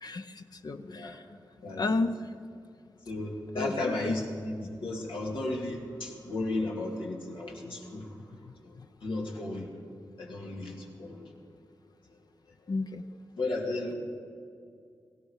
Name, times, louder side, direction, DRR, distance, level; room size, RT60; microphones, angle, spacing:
voice 1, 0.0-1.2 1.8-2.2 3.5-4.1 12.7-13.0, left 3 dB, 55° left, 8 dB, 0.6 m, -32 dB
voice 2, 0.8-1.2 1.6-2.0 3.1-8.2 8.6-9.7 10.2-11.3 12.6-12.7 13.4-13.9, left 2 dB, 90° left, -1 dB, 2.6 m, -34 dB
18.0 x 16.0 x 4.8 m, 2.2 s
cardioid pair, 60°, 8 cm